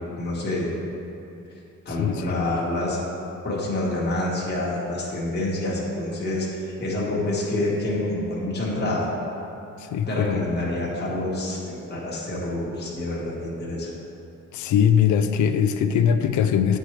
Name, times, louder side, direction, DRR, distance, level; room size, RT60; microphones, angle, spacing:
voice 1, 0.2-0.7 1.8-3.0 3.4-9.1 10.1-13.9, left 1 dB, 35° left, -5 dB, 1.3 m, -27 dB
voice 2, 2.0-2.4 9.8-10.5 14.5-16.8, left 8 dB, 70° left, 9 dB, 0.5 m, -21 dB
8.7 x 4.5 x 3.2 m, 2.8 s
cardioid pair, 90°, 30 cm